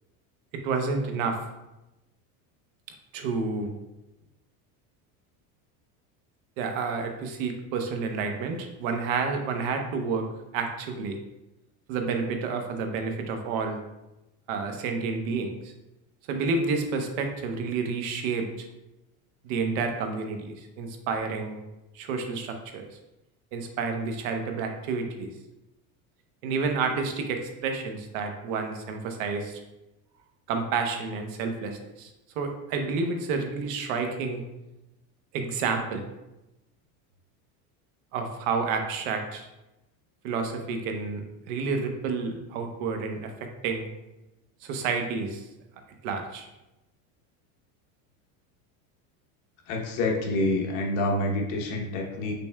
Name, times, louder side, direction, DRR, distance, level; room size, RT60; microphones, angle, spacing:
voice 1, 0.6-1.4 3.1-3.7 6.6-10.3 10.5-11.2 11.9-13.8 14.5-15.7 16.3-18.7 19.4-21.6 21.9-22.9 23.5-25.3 26.4-29.6 30.5-32.1 32.4-34.4 35.3-36.1 38.1-39.5 40.2-43.3 43.6-43.9 44.6-45.4 46.0-46.5, right 4 dB, 75° right, 5 dB, 0.8 m, -30 dB
voice 2, 49.7-52.3, left 2 dB, 70° left, 1 dB, 1.1 m, -27 dB
5.3 x 4.1 x 2.2 m, 0.96 s
cardioid pair, 155°, 41 cm